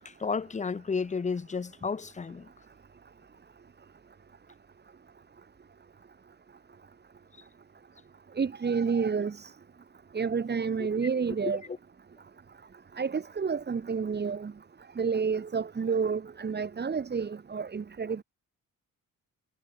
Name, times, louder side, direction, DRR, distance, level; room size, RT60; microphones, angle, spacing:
voice 1, 0.2-2.5 11.4-11.5, left 5 dB, 20° left, 1.0 m, -32 dB
voice 2, 8.4-9.5 10.1-11.6 13.0-14.5 15.0-18.2, right 5 dB, 30° right, 2.2 m, -29 dB
cardioid pair, 125°, 32 cm